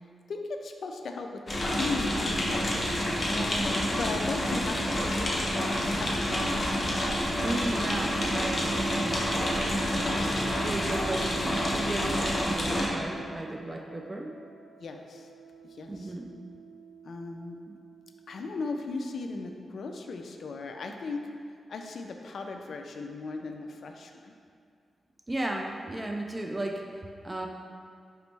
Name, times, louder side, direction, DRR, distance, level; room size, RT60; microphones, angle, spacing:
voice 1, 0.3-2.7 3.3-6.4 14.8-15.3 15.6-16.2 17.0-17.6 18.3-21.3 21.7-24.3, left 3 dB, 65° left, 4 dB, 0.3 m, -37 dB
sound 1, 1.5-12.9, equal, 35° left, 0.7 m, -28 dB
sound 2, 7.3-19.4, right 5 dB, 80° right, 0.8 m, -44 dB
voice 2, 7.4-9.6 9.9-14.3 15.9-16.3 17.7-17.8 25.3-27.5, right 1 dB, 20° right, 2 dB, 0.3 m, -35 dB
5.1 x 3.0 x 3.3 m, 2.3 s
wide cardioid pair, 115°, 0 cm